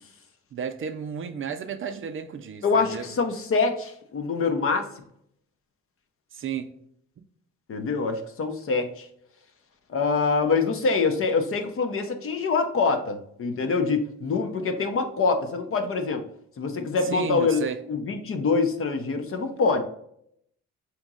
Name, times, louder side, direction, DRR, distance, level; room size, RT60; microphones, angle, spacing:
voice 1, 0.5-3.1 6.3-6.7 17.0-17.8, right 7 dB, 45° right, 0.4 m, -33 dB
voice 2, 2.6-4.9 7.7-9.1 9.9-16.2 16.6-17.6 17.9-19.8, left 4 dB, 45° left, 0.7 m, -25 dB
3.6 x 3.0 x 3.7 m
cardioid pair, 90°, 30 cm